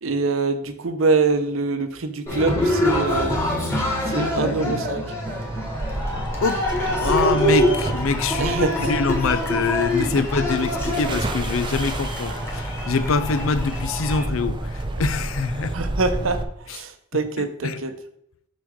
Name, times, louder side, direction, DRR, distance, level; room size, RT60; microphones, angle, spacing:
voice 1, 0.0-3.4 4.1-5.0 8.4-8.9 15.7-17.9, right 3 dB, 70° right, 0.8 m, -24 dB
Cheering, 2.3-14.3, left 1 dB, 15° left, 1.7 m, -25 dB
voice 2, 4.1-4.8 6.4-8.5 8.8-15.7 16.7-16.8 17.4-17.8, left 4 dB, 70° left, 0.5 m, -25 dB
sound 1, 5.3-16.4, right 1 dB, 25° right, 0.6 m, -29 dB
6.4 x 6.3 x 3.6 m
head